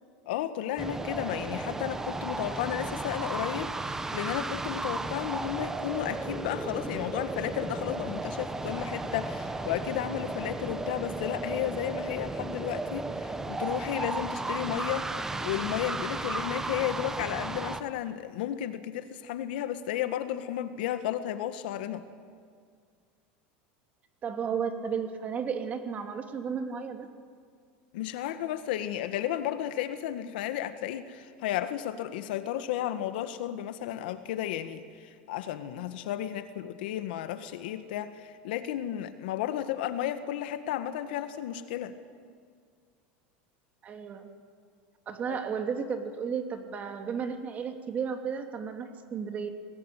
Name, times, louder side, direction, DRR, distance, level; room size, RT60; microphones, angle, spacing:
voice 1, 0.3-22.1 27.9-41.9 45.3-45.4, left 11 dB, 80° left, 10 dB, 1.8 m, -33 dB
sound 1, 0.8-17.8, right 2 dB, 10° right, 1.1 m, -34 dB
voice 2, 24.2-27.1 43.8-44.3 45.1-49.5, right 6 dB, 30° right, 6 dB, 2.6 m, -33 dB
26.0 x 19.5 x 9.2 m, 2.1 s
supercardioid pair, 140°, 5 cm